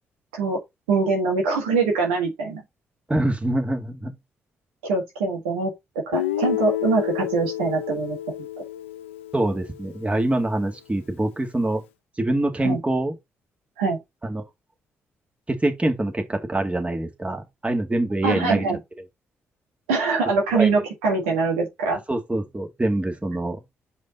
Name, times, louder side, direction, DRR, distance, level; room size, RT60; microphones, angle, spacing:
voice 1, 0.9-2.6 4.8-8.2 12.6-12.8 13.8-14.0 18.2-18.8 19.9-22.0, right 4 dB, 80° right, 1.6 m, -23 dB
voice 2, 3.1-4.1 9.3-11.8 12.2-13.1 14.2-14.4 15.5-18.6 20.5-20.7 22.1-23.6, right 1 dB, 20° right, 2.1 m, -25 dB
Guitar, 6.1-10.1, left 12 dB, 85° left, 0.3 m, -30 dB
5.3 x 5.0 x 3.9 m
hypercardioid pair, 40°, 6 cm